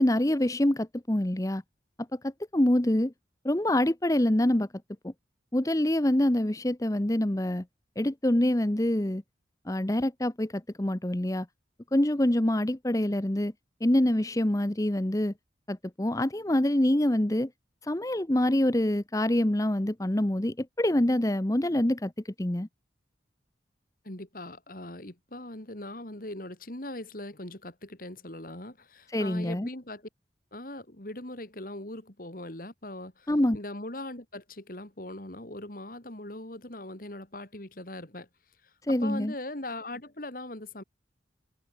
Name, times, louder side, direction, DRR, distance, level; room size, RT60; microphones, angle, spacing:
voice 1, 0.0-1.6 2.2-3.1 3.4-4.7 5.0-5.1 5.5-7.6 8.0-9.2 9.7-11.5 11.9-13.5 13.8-15.3 15.7-17.5 17.8-22.1 22.4-22.7 29.1-29.7 33.3-33.6 38.9-39.3, left 1 dB, 20° left, 0.8 m, -25 dB
voice 2, 24.0-30.1 30.5-38.3 38.9-40.8, left 1 dB, 50° left, 2.7 m, -40 dB
open air
head